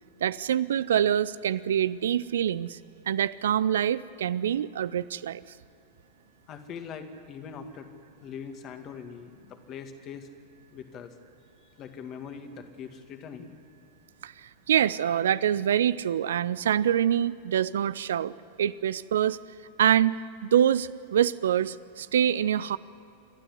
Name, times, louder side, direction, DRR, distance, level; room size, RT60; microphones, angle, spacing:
voice 1, 0.2-2.8 3.1-5.4 14.2-19.4 19.8-22.8, right 10 dB, 60° right, 18 dB, 0.5 m, -25 dB
voice 2, 6.5-7.9 8.2-10.3 10.7-11.1 11.8-13.5, left 6 dB, 35° left, 6 dB, 2.1 m, -42 dB
29.5 x 12.5 x 9.8 m, 2.8 s
figure-of-eight pair, 90°, 0 cm